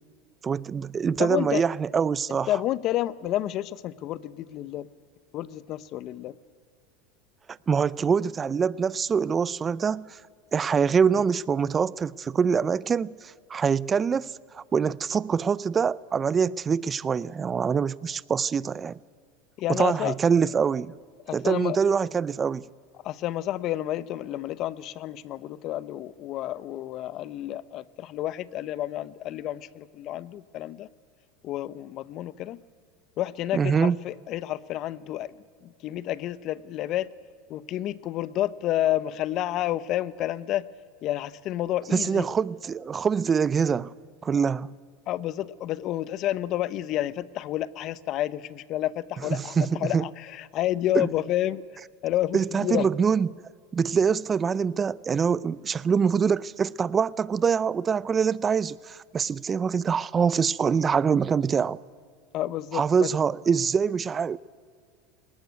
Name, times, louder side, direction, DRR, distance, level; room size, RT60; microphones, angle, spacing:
voice 1, 0.4-2.5 7.7-10.2 10.5-19.0 19.7-20.9 21.3-22.7 33.5-34.0 41.9-43.9 44.2-44.7 49.3-50.1 50.9-51.1 52.3-53.3 53.7-61.8 62.7-64.4, right 6 dB, 25° right, 0.5 m, -24 dB
voice 2, 1.2-1.6 2.5-4.9 5.3-6.4 11.1-11.2 19.6-20.1 21.3-21.8 23.0-30.9 31.4-32.6 33.2-37.1 37.5-40.7 41.0-42.3 45.1-51.6 52.0-52.9 62.3-63.1, left 13 dB, 50° left, 0.7 m, -30 dB
20.5 x 19.0 x 9.4 m
supercardioid pair, 115°, 0 cm